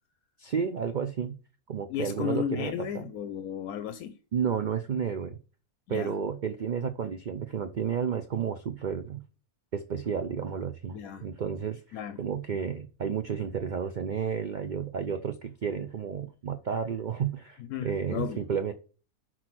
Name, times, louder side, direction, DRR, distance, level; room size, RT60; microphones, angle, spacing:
voice 1, 0.4-1.4 1.7-3.1 4.3-5.4 5.9-9.2 9.7-18.7, right 7 dB, 85° right, 0.4 m, -32 dB
voice 2, 1.9-4.2 5.9-6.1 10.9-11.3 11.9-12.2 17.6-18.4, left 9 dB, 80° left, 1.1 m, -34 dB
6.2 x 4.2 x 5.9 m
omnidirectional pair, 1.5 m